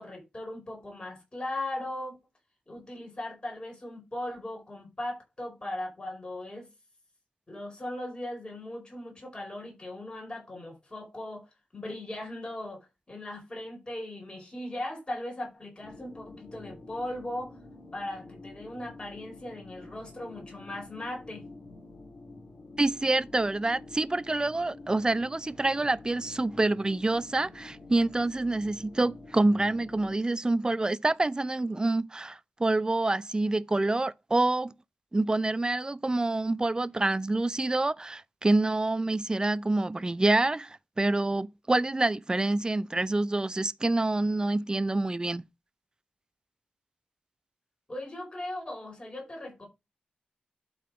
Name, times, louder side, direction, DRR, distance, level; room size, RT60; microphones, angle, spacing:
voice 1, 0.0-2.2 2.7-6.7 7.5-11.5 11.7-17.6 17.9-21.4 47.9-49.7, left 1 dB, 30° left, 4.7 m, -38 dB
sound 1, 15.8-30.2, left 2 dB, 55° left, 1.9 m, -48 dB
voice 2, 22.8-34.7 35.1-45.4, right 2 dB, 25° right, 0.6 m, -27 dB
12.0 x 4.0 x 4.8 m
wide cardioid pair, 85°, 3 cm